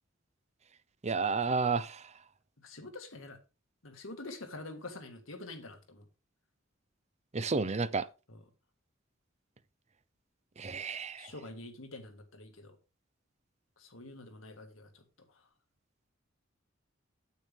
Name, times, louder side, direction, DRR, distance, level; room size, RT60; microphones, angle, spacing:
voice 1, 1.0-2.0 7.3-8.0 10.6-11.3, right 4 dB, 35° right, 0.7 m, -31 dB
voice 2, 2.6-3.4 3.8-6.1 8.3-8.4 11.2-12.8 13.8-15.4, left 2 dB, 75° left, 1.9 m, -47 dB
9.3 x 8.5 x 3.5 m
head